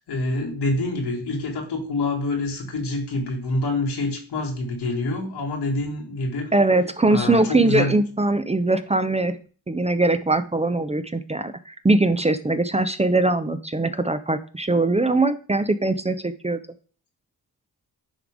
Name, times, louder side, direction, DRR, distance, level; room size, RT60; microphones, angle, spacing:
voice 1, 0.1-6.5 7.1-8.0, left 2 dB, 85° left, 0 dB, 2.3 m, -26 dB
voice 2, 6.5-9.4 9.7-16.6, right 2 dB, 15° right, 11 dB, 0.6 m, -21 dB
10.0 x 3.4 x 3.6 m, 0.39 s
cardioid pair, 65°, 39 cm